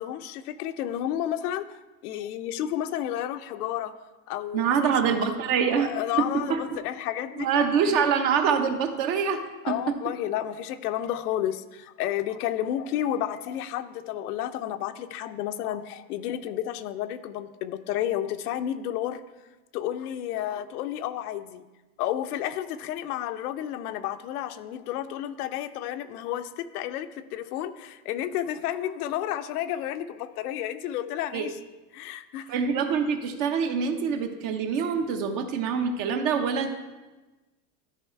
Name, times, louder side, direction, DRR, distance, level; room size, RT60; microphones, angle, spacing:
voice 1, 0.0-3.9 4.3-5.0 5.8-7.9 9.6-19.2 19.7-21.6 22.0-31.6 31.9-32.5, left 11 dB, 85° left, 10 dB, 0.7 m, -31 dB
voice 2, 4.5-5.9 6.2-6.6 7.4-9.4 9.7-9.8 31.3-31.5 32.5-36.7, right 6 dB, 50° right, 6 dB, 1.1 m, -25 dB
12.5 x 5.0 x 4.5 m, 1.2 s
supercardioid pair, 140°, 44 cm